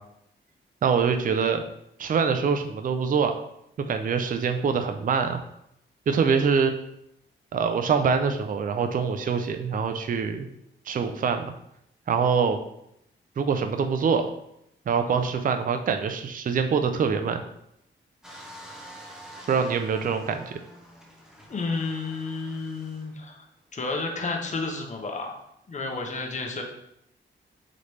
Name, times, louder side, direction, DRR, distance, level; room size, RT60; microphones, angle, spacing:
voice 1, 0.8-1.6 2.0-3.4 3.8-5.4 6.1-6.7 7.5-10.5 10.9-11.5 12.1-12.6 13.4-14.3 14.9-17.4 19.5-20.6, right 6 dB, 45° right, 7 dB, 0.4 m, -24 dB
sound 1, 18.2-23.2 23.8-23.9, right 1 dB, 5° right, 0.7 m, -46 dB
voice 2, 21.5-23.5 23.7-25.4 25.7-26.6, left 3 dB, 35° left, 2 dB, 0.8 m, -31 dB
4.0 x 3.1 x 3.2 m, 0.76 s
cardioid pair, 90°, 21 cm